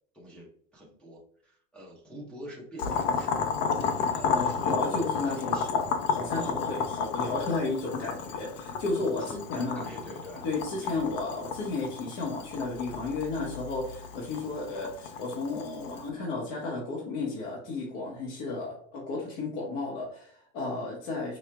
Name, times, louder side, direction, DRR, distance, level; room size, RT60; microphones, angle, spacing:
voice 1, 0.1-3.3 4.1-6.0 6.3-6.5 9.2-10.5 10.8-11.0, right 1 dB, 5° left, -5 dB, 0.7 m, -46 dB
Boiling, 2.8-16.0, left 6 dB, 75° left, 0.8 m, -32 dB
voice 2, 4.3-9.9 10.4-21.4, left 3 dB, 60° left, -3 dB, 1.2 m, -33 dB
4.6 x 3.0 x 2.2 m, 0.62 s
supercardioid pair, 145°, 37 cm